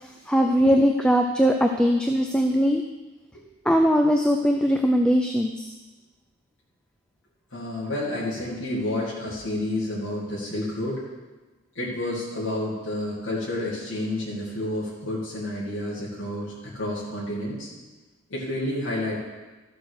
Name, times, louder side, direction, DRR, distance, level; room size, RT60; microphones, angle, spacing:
voice 1, 0.0-2.8 3.7-5.7, equal, 5° left, 3 dB, 0.4 m, -20 dB
voice 2, 7.5-11.0 11.7-17.7 18.3-19.2, left 1 dB, 65° left, -7 dB, 2.5 m, -30 dB
13.5 x 6.0 x 6.6 m, 1.2 s
head